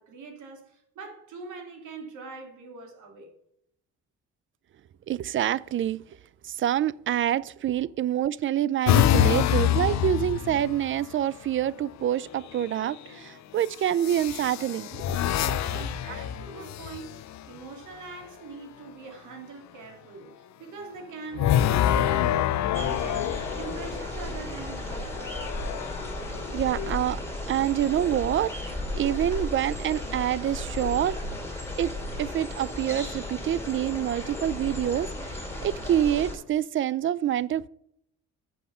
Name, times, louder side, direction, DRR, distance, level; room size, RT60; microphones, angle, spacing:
voice 1, 0.0-3.3 15.6-25.5, right 4 dB, 80° right, 2.5 m, -43 dB
voice 2, 5.1-6.0 6.4-15.5 26.5-27.2 27.5-31.2 31.8-31.9 32.2-37.7, right 11 dB, 40° right, 0.4 m, -27 dB
sound 1, 8.9-11.1 12.4-12.9 14.0-17.4 21.3-24.3 25.0-26.9, left 11 dB, 65° left, 0.6 m, -26 dB
sound 2, 22.7-36.3, left 1 dB, 10° left, 2.7 m, -35 dB
7.7 x 6.5 x 5.5 m
cardioid pair, 90°, 30 cm